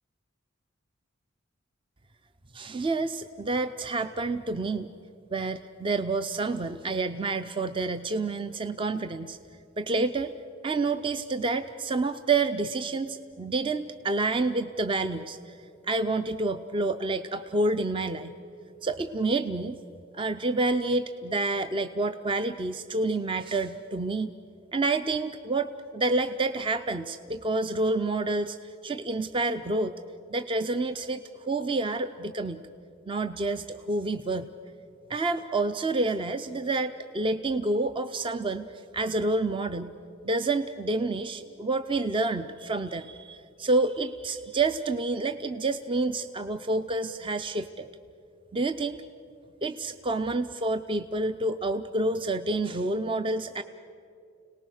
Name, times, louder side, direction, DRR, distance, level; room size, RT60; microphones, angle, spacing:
voice 1, 2.5-4.9 5.3-9.4 9.8-10.3 10.6-15.6 15.9-18.4 18.8-19.8 20.1-24.3 24.7-29.9 30.3-32.6 33.1-34.5 35.1-38.7 38.9-39.9 40.2-47.9 48.5-49.0 49.6-53.6, right 3 dB, 25° right, 10 dB, 0.5 m, -28 dB
30.0 x 19.0 x 6.4 m, 2.4 s
head